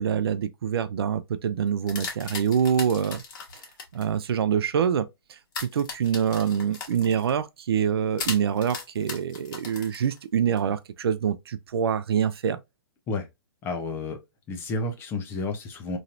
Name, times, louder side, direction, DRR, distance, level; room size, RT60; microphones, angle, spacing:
voice 1, 0.0-3.2 3.9-5.1 5.7-12.6, right 8 dB, 70° right, 0.5 m, -25 dB
sound 1, 1.7-4.0 5.5-7.4 8.2-10.6, left 5 dB, 50° left, 1.4 m, -37 dB
voice 2, 13.6-14.2 14.5-16.0, left 3 dB, 15° left, 0.6 m, -31 dB
3.1 x 2.7 x 2.5 m
hypercardioid pair, 145°, 13 cm